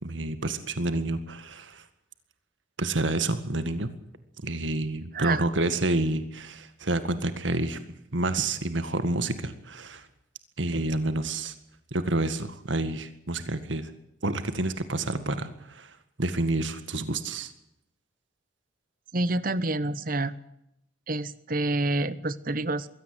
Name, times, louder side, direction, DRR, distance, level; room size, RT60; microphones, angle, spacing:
voice 1, 0.0-1.8 2.8-3.9 4.4-7.8 8.1-10.1 10.6-11.6 11.9-13.9 14.2-17.5, right 2 dB, 80° right, 11 dB, 2.0 m, -29 dB
voice 2, 5.1-5.5 19.1-20.3 21.1-22.9, right 2 dB, 45° right, 16 dB, 1.2 m, -28 dB
23.0 x 17.0 x 8.0 m, 0.79 s
head